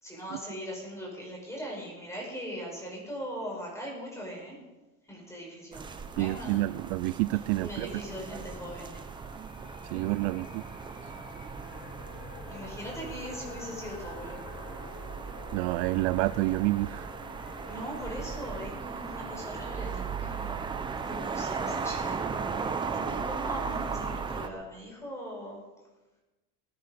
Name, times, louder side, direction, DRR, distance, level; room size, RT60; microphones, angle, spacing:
voice 1, 0.0-4.6 5.1-6.9 7.6-9.0 12.4-14.4 17.6-20.7 21.0-25.6, equal, 5° left, -2 dB, 5.3 m, -40 dB
sound 1, 5.7-24.5, right 5 dB, 10° right, 0.6 m, -37 dB
voice 2, 6.2-7.9 9.9-10.6 15.5-17.1, right 19 dB, 60° right, 15 dB, 0.5 m, -28 dB
sound 2, 8.3-23.1, left 5 dB, 80° left, 3.3 m, -51 dB
20.0 x 9.7 x 5.2 m, 1.1 s
cardioid pair, 170°, 44 cm